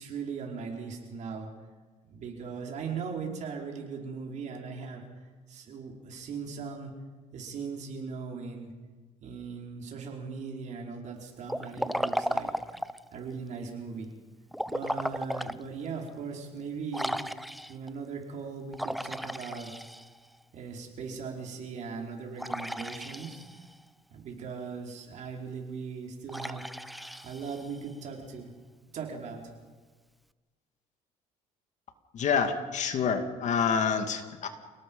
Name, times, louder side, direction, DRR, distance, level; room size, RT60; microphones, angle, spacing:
voice 1, 0.0-1.5 2.1-5.0 5.5-6.9 7.3-8.7 9.2-12.5 13.1-14.1 14.7-17.1 17.7-19.7 20.5-23.4 24.1-26.7 27.2-28.5 28.9-29.4, right 5 dB, 60° right, 0 dB, 4.9 m, -39 dB
Liquid, 11.5-13.1 14.5-15.6 16.1-16.2 16.9-17.9 18.7-20.4 22.4-23.7 26.3-27.9, equal, ahead, 0.7 m, -35 dB
voice 2, 32.1-34.5, left 6 dB, 55° left, 7 dB, 2.3 m, -27 dB
28.5 x 18.5 x 5.6 m, 1.4 s
cardioid pair, 105°, 14 cm